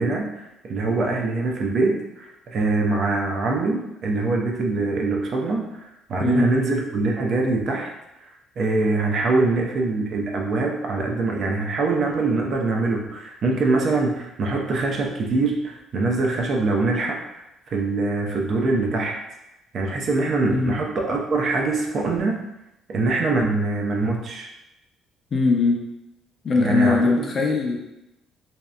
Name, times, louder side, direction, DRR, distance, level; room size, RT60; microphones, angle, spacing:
voice 1, 0.0-7.9 8.2-8.3 8.6-17.4 17.7-19.2 19.7-22.5 22.9-24.5 26.6-27.3, right 3 dB, 55° right, 0 dB, 0.4 m, -23 dB
voice 2, 20.5-20.8 25.3-25.8 26.4-27.8, left 3 dB, 40° left, 1 dB, 0.5 m, -20 dB
2.7 x 2.0 x 2.3 m, 0.89 s
cardioid pair, 90°, 0 cm